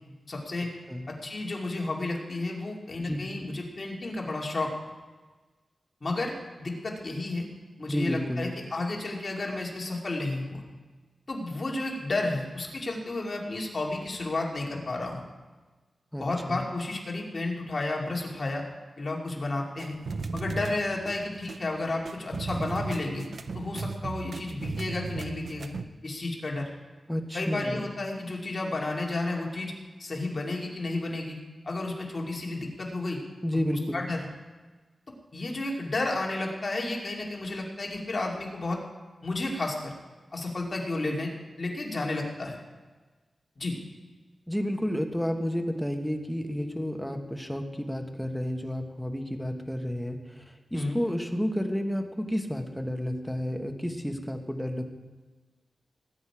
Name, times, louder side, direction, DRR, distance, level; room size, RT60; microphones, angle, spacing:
voice 1, 0.3-0.7 1.1-4.7 6.0-7.5 7.8-10.6 11.3-15.2 16.2-18.6 19.0-20.0 20.3-23.2 23.5-25.8 26.0-26.7 27.3-29.7 30.0-31.4 31.6-33.2 33.7-34.3 35.3-38.8 39.2-39.9 40.3-41.3 41.6-42.6 43.6-43.7 50.7-51.0, left 2 dB, 45° left, -1 dB, 2.7 m, -32 dB
voice 2, 7.9-8.5 16.1-16.6 27.1-27.8 33.4-34.0 44.5-50.4 50.7-54.8, equal, ahead, 4 dB, 1.5 m, -31 dB
sound 1, 19.8-25.8, right 4 dB, 70° right, 0.6 m, -36 dB
19.0 x 9.5 x 4.9 m, 1.3 s
wide cardioid pair, 85°, 0 cm